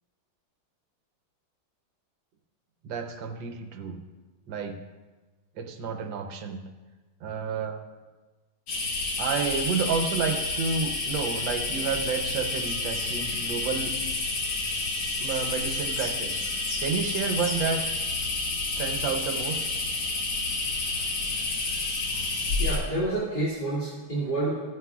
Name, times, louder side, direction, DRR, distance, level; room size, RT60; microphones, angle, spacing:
voice 1, 2.8-4.0 4.5-4.8 5.6-6.6 7.2-7.8 9.2-13.9 15.2-17.8 18.8-19.6, right 5 dB, 70° right, 5 dB, 1.5 m, -30 dB
sound 1, 8.7-22.8, left 3 dB, 80° left, 2.4 m, -29 dB
voice 2, 22.6-24.6, right 2 dB, 25° left, -10 dB, 2.4 m, -28 dB
15.0 x 9.6 x 2.4 m, 1.3 s
omnidirectional pair, 2.2 m